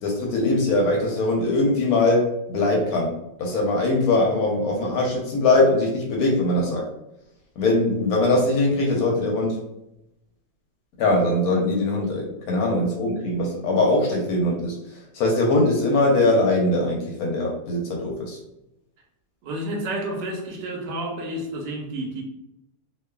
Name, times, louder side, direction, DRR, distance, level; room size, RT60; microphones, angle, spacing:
voice 1, 0.0-3.1 3.4-6.8 7.6-9.6 11.0-14.8 15.1-18.4, left 2 dB, 70° left, -1 dB, 0.9 m, -21 dB
voice 2, 19.4-22.2, right 1 dB, 75° right, 0 dB, 1.2 m, -30 dB
3.0 x 2.1 x 2.2 m, 0.86 s
omnidirectional pair, 2.0 m